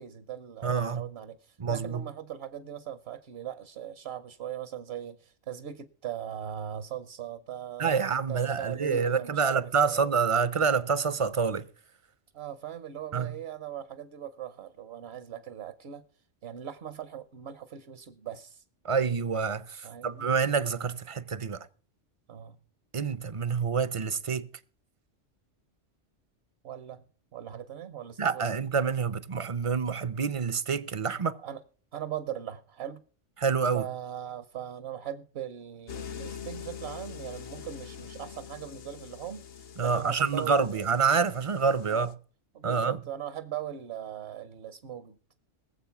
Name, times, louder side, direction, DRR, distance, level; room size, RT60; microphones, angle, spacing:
voice 1, 0.0-10.0 12.3-16.0 16.4-18.6 19.8-20.3 22.3-22.6 26.6-27.0 27.3-28.5 31.4-31.6 31.9-33.0 33.7-40.8 41.9-42.1 42.5-45.2, right 10 dB, 60° right, 1.1 m, -40 dB
voice 2, 0.6-1.1 1.6-2.0 7.8-11.7 13.1-13.3 18.8-21.6 22.9-24.5 28.2-31.4 33.4-33.8 39.8-42.1 42.6-43.0, right 5 dB, 35° right, 0.6 m, -27 dB
sound 1, 35.9-42.1, left 7 dB, 55° left, 1.0 m, -44 dB
19.5 x 7.7 x 5.8 m
omnidirectional pair, 1.3 m